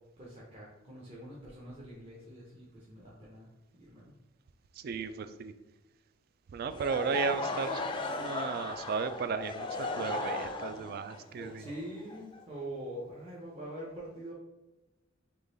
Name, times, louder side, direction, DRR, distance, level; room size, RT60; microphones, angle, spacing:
voice 1, 0.2-3.5 3.8-4.1 11.6-14.3, right 1 dB, 30° right, -6 dB, 0.8 m, -44 dB
voice 2, 4.8-5.5 6.5-7.8 8.2-11.7, right 5 dB, 50° right, 11 dB, 0.3 m, -35 dB
Laughter / Crowd, 6.7-12.6, left 3 dB, 25° left, 0.4 m, -36 dB
3.8 x 3.1 x 3.9 m, 1.1 s
head